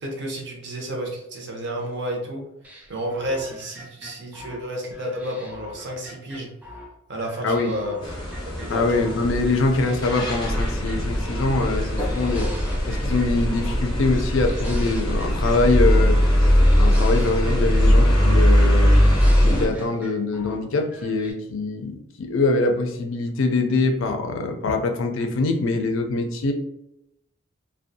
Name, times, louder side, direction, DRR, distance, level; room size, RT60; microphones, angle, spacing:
voice 1, 0.0-2.4 2.9-6.5 7.1-8.2 8.5-9.2, right 1 dB, 55° right, 1 dB, 0.6 m, -31 dB
sound 1, 2.6-6.9 7.2-9.2 9.5-11.5 11.8-13.8 14.1-16.1 16.3-18.4 18.6-20.6 20.9-21.3, equal, 5° right, 0.3 m, -42 dB
sound 2, 8.0-19.7, equal, 20° left, 0.7 m, -20 dB
voice 2, 8.7-12.5 12.9-16.2 16.8-18.9 19.4-26.5, left 3 dB, 65° left, 5 dB, 0.4 m, -23 dB
2.5 x 2.2 x 2.6 m, 0.84 s
head